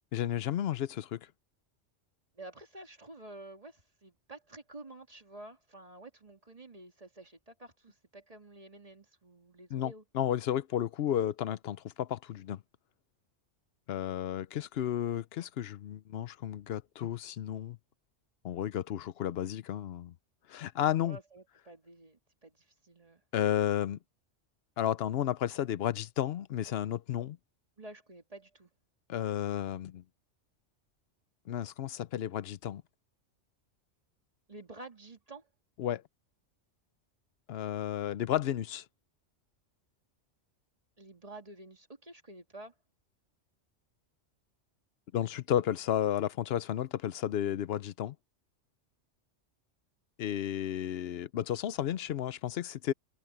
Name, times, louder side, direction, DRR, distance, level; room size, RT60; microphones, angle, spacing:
voice 1, 0.1-1.3 9.7-12.6 13.9-17.8 18.4-20.1 20.5-21.2 23.3-24.0 24.8-27.4 29.1-30.0 31.5-32.8 35.8-36.0 37.5-38.8 45.1-48.1 50.2-52.9, left 10 dB, 65° left, 0.8 m, -32 dB
voice 2, 2.4-10.0 20.9-23.2 27.8-28.7 34.5-35.5 41.0-42.7, right 2 dB, 30° right, 2.3 m, -50 dB
omnidirectional pair, 1.2 m